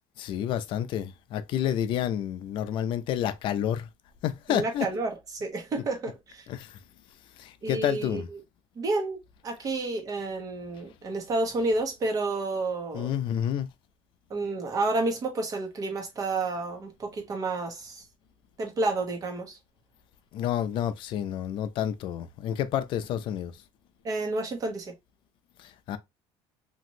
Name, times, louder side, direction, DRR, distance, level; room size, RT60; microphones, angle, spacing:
voice 1, 0.2-3.9 4.2-4.9 6.5-6.8 7.4-8.3 12.9-13.7 20.3-23.5 25.6-26.0, left 10 dB, 55° left, 0.5 m, -29 dB
voice 2, 4.5-6.5 7.6-8.4 8.8-13.1 14.3-18.0 18.6-19.6 24.0-24.9, right 2 dB, 35° right, 1.1 m, -30 dB
3.0 x 2.5 x 2.6 m
cardioid pair, 135°, 10 cm